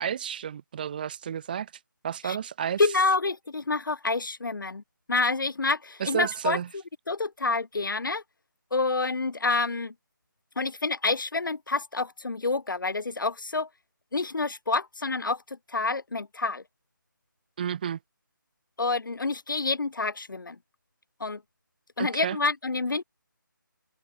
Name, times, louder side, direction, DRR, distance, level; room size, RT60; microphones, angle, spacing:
voice 1, 0.0-1.7 2.0-2.9 6.0-6.7 17.6-18.0 22.0-22.4, right 8 dB, 25° right, 7.1 m, -31 dB
voice 2, 2.8-4.8 5.1-6.6 7.1-8.2 8.7-9.9 10.6-13.7 14.1-15.4 15.7-16.6 18.8-20.6 21.2-21.4 22.0-23.0, left 3 dB, 70° left, 1.2 m, -28 dB
figure-of-eight pair, 170°, 11 cm